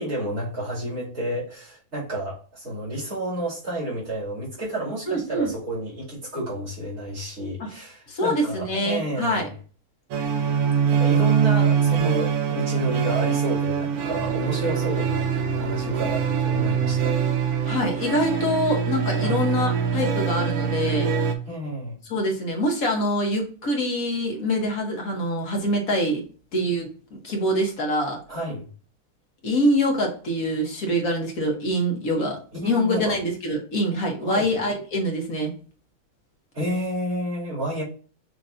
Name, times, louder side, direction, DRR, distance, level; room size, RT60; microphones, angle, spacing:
voice 1, 0.0-9.5 10.4-10.5 10.9-17.2 17.5-17.7 19.2-19.5 21.5-22.0 28.3-28.6 32.2-32.3 32.5-33.2 34.2-34.5 36.5-37.8, right 1 dB, 65° right, 3.0 m, -30 dB
voice 2, 5.1-5.5 8.1-9.5 17.7-21.1 22.0-26.2 26.5-26.9 27.2-28.2 29.4-32.4 32.6-35.5, equal, 70° left, 1.7 m, -25 dB
sound 1, 10.1-21.3, right 7 dB, 80° right, 1.2 m, -23 dB
6.5 x 3.0 x 2.6 m
omnidirectional pair, 1.5 m